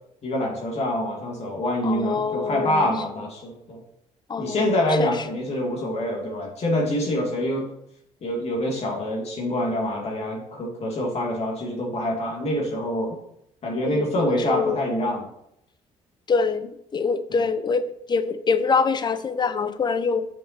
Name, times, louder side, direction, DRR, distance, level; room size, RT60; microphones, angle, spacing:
voice 1, 0.2-3.8 4.4-7.7 8.2-13.2 13.6-15.2 17.3-17.4, left 1 dB, 50° left, -1 dB, 2.4 m, -26 dB
voice 2, 1.8-2.9 4.3-4.6 5.0-5.1 13.9-14.8 16.3-20.3, left 5 dB, 35° left, 12 dB, 0.7 m, -24 dB
7.0 x 5.7 x 4.4 m, 0.75 s
cardioid pair, 95°, 13 cm